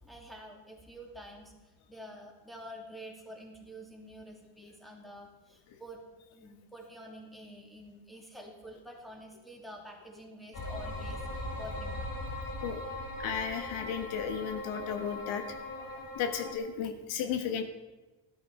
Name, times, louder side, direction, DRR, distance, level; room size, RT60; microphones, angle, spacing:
voice 1, 0.0-6.0 6.3-12.1, equal, ahead, 0 dB, 2.8 m, -48 dB
sound 1, 10.5-16.5, left 1 dB, 45° left, 2.7 m, -39 dB
voice 2, 13.2-15.4 16.1-17.6, left 7 dB, 80° left, 7 dB, 1.5 m, -34 dB
13.5 x 11.5 x 4.9 m, 1.1 s
cardioid pair, 105°, 48 cm